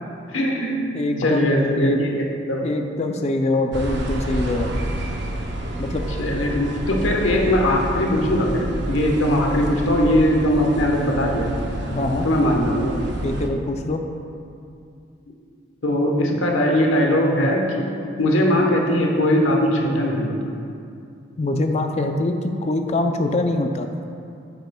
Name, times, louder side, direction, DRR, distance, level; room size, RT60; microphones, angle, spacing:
voice 1, 0.3-0.8 1.2-2.1 2.5-2.6 6.2-11.5 12.2-13.0 15.3-15.4 15.8-17.9 18.2-20.3, left 1 dB, 85° left, 0 dB, 1.1 m, -20 dB
voice 2, 0.9-2.1 2.6-4.7 5.8-6.0 11.9-12.3 13.2-14.0 21.4-23.9, left 2 dB, 35° left, 5 dB, 0.4 m, -24 dB
sound 1, 3.7-13.5, right 1 dB, 60° right, 0.7 m, -28 dB
9.1 x 8.0 x 2.3 m, 2.4 s
head